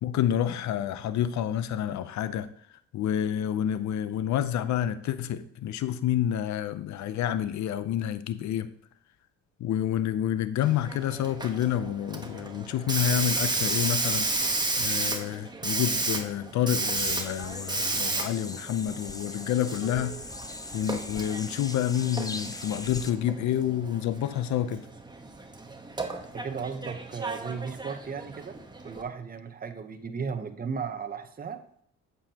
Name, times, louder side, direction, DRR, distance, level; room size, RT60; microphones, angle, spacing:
voice 1, 0.0-8.7 9.6-14.3 14.8-20.2 20.7-24.9, left 10 dB, 70° left, 12 dB, 0.6 m, -29 dB
Hiss, 10.6-29.0, right 2 dB, 15° right, 1.1 m, -33 dB
sound 1, 17.0-23.1, left 2 dB, 10° left, 0.6 m, -40 dB
voice 2, 26.3-28.6 28.8-31.6, right 6 dB, 30° right, 7 dB, 0.9 m, -35 dB
8.6 x 7.1 x 2.9 m, 0.64 s
cardioid pair, 90°, 30 cm